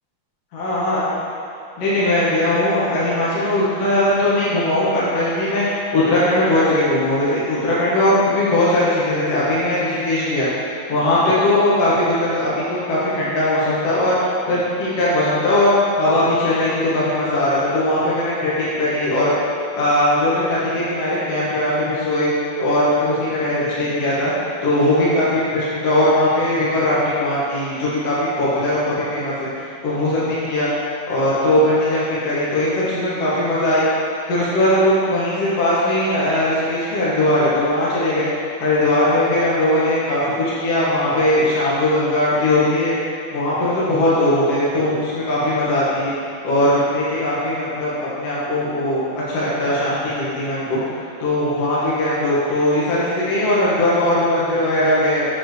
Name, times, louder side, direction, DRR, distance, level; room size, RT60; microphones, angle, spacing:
voice 1, 0.5-1.0 1.8-10.5 10.9-19.3 19.7-22.3 22.6-24.3 24.6-29.5 29.8-30.7 31.1-33.8 34.3-38.3 38.6-42.9 43.3-46.1 46.4-50.8 51.2-55.3, left 1 dB, 60° left, -9 dB, 1.8 m, -19 dB
7.3 x 5.3 x 3.0 m, 2.5 s
omnidirectional pair, 4.5 m